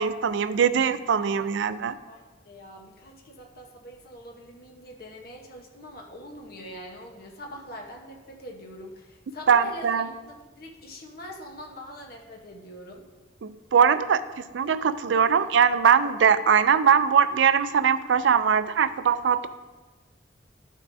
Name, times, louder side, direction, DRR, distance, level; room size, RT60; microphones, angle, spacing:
voice 1, 0.0-2.0 9.5-10.0 13.4-14.2 14.5-19.5, right 7 dB, 85° right, 14 dB, 0.4 m, -21 dB
voice 2, 2.1-13.0, left 1 dB, 55° left, 0 dB, 1.0 m, -43 dB
12.5 x 6.4 x 2.7 m, 1.3 s
head